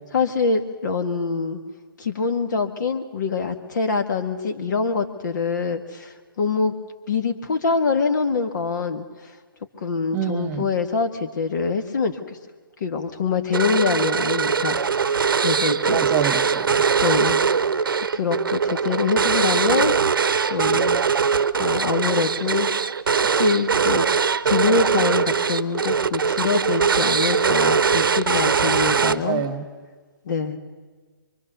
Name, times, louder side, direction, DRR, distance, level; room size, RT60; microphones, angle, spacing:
voice 1, 0.1-1.6 2.0-6.7 7.1-9.1 9.8-12.4 12.8-16.0 17.0-17.4 18.1-20.0 20.5-21.0 21.6-22.7 23.2-24.1 24.4-29.5 30.3-30.6, left 5 dB, 55° left, 8 dB, 2.0 m, -24 dB
voice 2, 10.1-10.7 15.9-16.8 29.0-29.6, right 9 dB, 20° right, 11 dB, 1.4 m, -27 dB
sound 1, 13.5-29.5, right 6 dB, 70° right, 0.9 m, -21 dB
24.5 x 24.0 x 6.9 m, 1.4 s
figure-of-eight pair, 135°, 12 cm